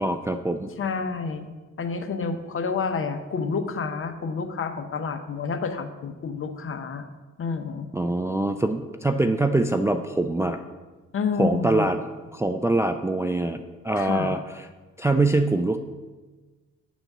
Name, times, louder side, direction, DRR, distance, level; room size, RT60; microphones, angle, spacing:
voice 1, 0.0-0.7 7.9-10.6 11.4-12.0 12.3-13.6 13.8-14.4 15.0-15.8, right 2 dB, 10° right, 6 dB, 0.3 m, -23 dB
voice 2, 0.8-1.5 1.8-7.0 7.4-7.9 11.1-11.9 14.0-14.4, left 5 dB, 45° left, 7 dB, 0.9 m, -29 dB
9.0 x 4.1 x 6.0 m, 1.3 s
cardioid pair, 90°, 30 cm